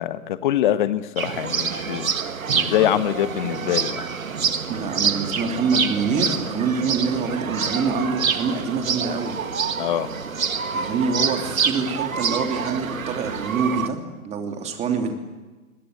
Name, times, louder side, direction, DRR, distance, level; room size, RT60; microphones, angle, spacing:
voice 1, 0.0-2.1 2.5-4.0 9.8-10.1, left 12 dB, 35° left, 13 dB, 1.4 m, -24 dB
sound 1, 1.2-13.9, right 6 dB, 65° right, 1.9 m, -26 dB
voice 2, 4.7-9.3 10.7-14.0 14.2-15.1, right 5 dB, 15° right, 4 dB, 3.0 m, -25 dB
27.5 x 22.0 x 8.0 m, 1.2 s
figure-of-eight pair, 125°, 43 cm